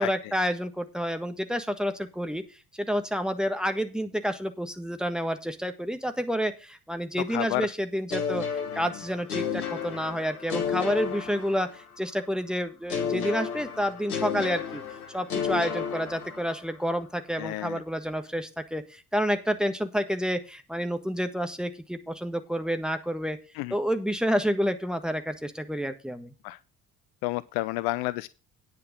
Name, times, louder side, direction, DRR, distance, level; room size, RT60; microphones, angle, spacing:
voice 1, 0.0-2.4 2.7-8.4 8.7-14.8 15.1-23.4 23.7-26.3, equal, ahead, 8 dB, 1.4 m, -29 dB
voice 2, 7.3-7.7 8.7-8.9 17.4-17.8 23.5-23.8 26.4-26.6 27.2-28.3, left 19 dB, 60° left, 17 dB, 0.5 m, -30 dB
sound 1, 8.1-12.0 12.9-16.8, left 7 dB, 80° left, 1.3 m, -32 dB
9.6 x 6.1 x 6.6 m, 0.32 s
figure-of-eight pair, 50°, 44 cm